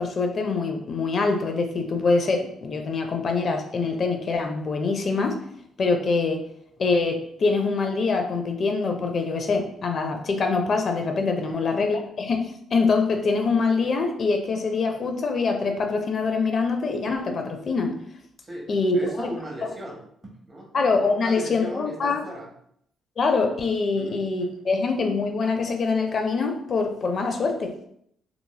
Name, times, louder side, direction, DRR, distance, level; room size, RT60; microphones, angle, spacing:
voice 1, 0.0-5.4 5.8-6.4 6.8-17.9 18.7-19.3 20.7-22.2 23.2-27.7, left 4 dB, 50° left, 4 dB, 0.5 m, -24 dB
voice 2, 18.4-20.7 21.1-22.5 23.9-24.2, right 1 dB, 15° right, -1 dB, 0.9 m, -38 dB
3.0 x 2.6 x 2.2 m, 0.71 s
cardioid pair, 90°, 0 cm